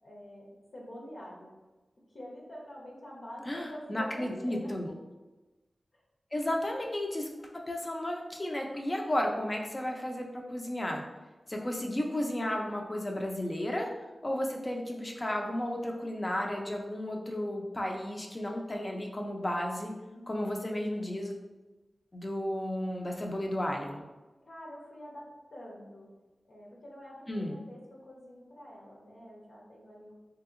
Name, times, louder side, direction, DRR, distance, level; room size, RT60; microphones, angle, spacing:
voice 1, 0.0-1.5 2.1-4.7 20.1-20.5 24.4-26.1 26.5-30.1, equal, 65° left, -3 dB, 0.9 m, -46 dB
voice 2, 3.5-4.9 6.3-11.0 11.5-13.9 14.2-19.9 20.3-21.4 22.1-24.0 27.3-27.6, left 1 dB, 30° left, 1 dB, 0.5 m, -33 dB
3.3 x 2.8 x 2.5 m, 1.2 s
wide cardioid pair, 65°, 0 cm